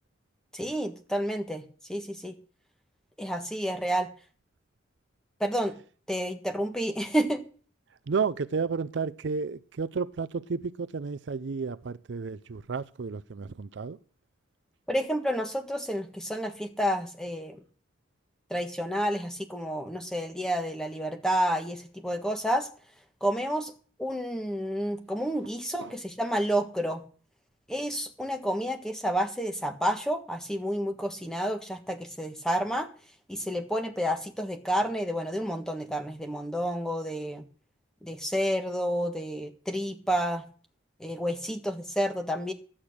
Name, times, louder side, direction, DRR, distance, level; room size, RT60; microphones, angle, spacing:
voice 1, 0.5-1.6 1.9-2.3 3.2-4.1 5.4-5.7 6.1-7.4 14.9-17.6 18.5-22.7 23.2-23.7 24.0-27.0 27.7-32.9 33.3-37.4 38.0-40.4 41.0-42.5, equal, 5° left, 1.4 m, -30 dB
voice 2, 8.1-14.0 25.8-25.9, right 5 dB, 65° right, 0.5 m, -32 dB
12.0 x 8.7 x 6.4 m
head